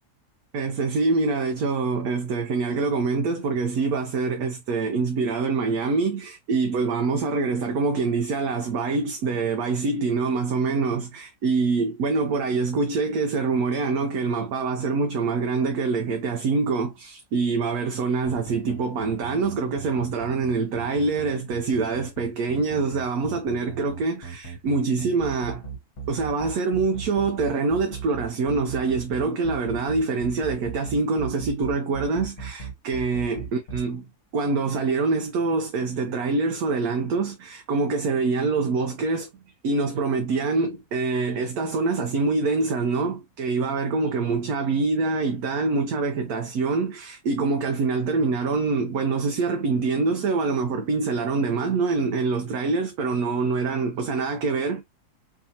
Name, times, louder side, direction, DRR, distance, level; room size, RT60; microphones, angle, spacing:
voice 1, 0.5-25.6 26.1-34.0 34.3-39.3 39.6-54.8, right 4 dB, 70° right, 1.1 m, -25 dB
sound 1, 18.3-33.8, right 6 dB, 50° left, 1.3 m, -36 dB
4.7 x 2.7 x 2.7 m
omnidirectional pair, 1.7 m